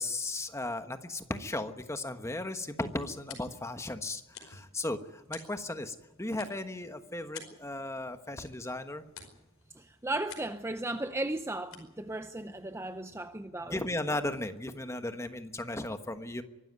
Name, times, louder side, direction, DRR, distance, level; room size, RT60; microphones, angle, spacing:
voice 1, 0.0-9.0 13.7-16.4, left 2 dB, 15° left, 1.2 m, -36 dB
sound 1, 2.2-13.4, left 6 dB, 65° left, 5.0 m, -54 dB
voice 2, 9.7-13.8, right 2 dB, 10° right, 0.6 m, -36 dB
24.0 x 13.0 x 9.4 m
head